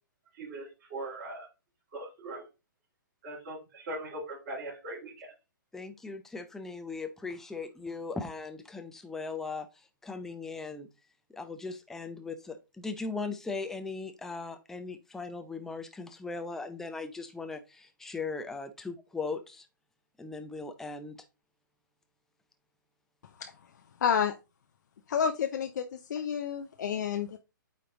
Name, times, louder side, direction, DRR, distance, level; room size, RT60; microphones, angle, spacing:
voice 1, 0.3-1.5 1.9-2.4 3.2-5.3, right 1 dB, 40° right, -5 dB, 3.6 m, -40 dB
voice 2, 5.7-9.7 10.0-10.9 11.3-19.7 20.2-21.2, left 4 dB, 5° left, 7 dB, 0.6 m, -38 dB
voice 3, 24.0-24.3 25.1-27.4, left 7 dB, 60° left, 5 dB, 0.7 m, -29 dB
8.8 x 3.3 x 3.9 m, 0.28 s
figure-of-eight pair, 130°, 11 cm